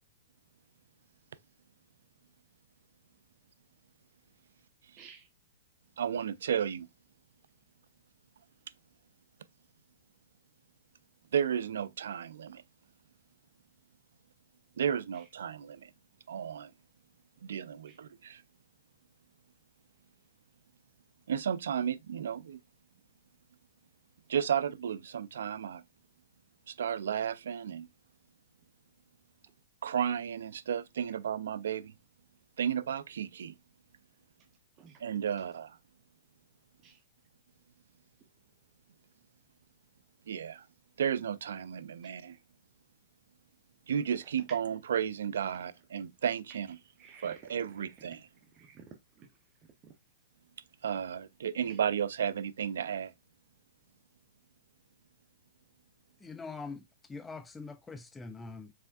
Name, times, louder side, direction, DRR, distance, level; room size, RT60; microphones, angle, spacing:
voice 1, 5.0-5.3 15.1-15.3 17.9-18.0 34.8-35.0 36.8-37.0 42.0-42.1 44.2-44.6 46.5-46.6 47.0-48.1 48.4-49.3 49.8-49.9 51.6-51.8, right 7 dB, 30° right, 0.7 m, -54 dB
voice 2, 6.0-6.9 11.3-12.6 14.8-15.9 16.3-16.7 17.4-18.4 21.3-22.6 24.3-25.8 26.7-27.9 29.8-31.9 32.6-33.5 35.0-35.8 40.3-40.7 41.0-42.4 43.9-46.7 47.2-48.3 50.8-53.1, right 8 dB, 75° right, 0.4 m, -33 dB
voice 3, 56.2-58.7, left 4 dB, 10° left, 0.3 m, -43 dB
4.8 x 3.3 x 2.3 m
hypercardioid pair, 130°, 0 cm